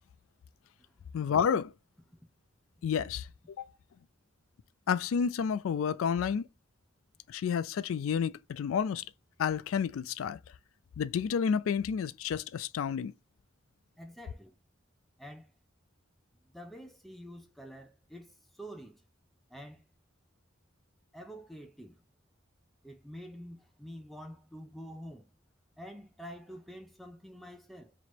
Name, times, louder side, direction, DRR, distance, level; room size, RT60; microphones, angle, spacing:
voice 1, 1.1-1.7 2.8-3.3 3.6-3.7 4.9-6.5 7.3-9.0 9.4-10.4 11.0-13.1, left 7 dB, 80° left, 0.3 m, -30 dB
voice 2, 14.0-14.5 15.2-15.5 16.5-19.0 19.5-19.8 21.1-21.9 22.8-25.3 25.8-27.9, equal, ahead, 0.5 m, -47 dB
3.0 x 2.9 x 4.3 m
head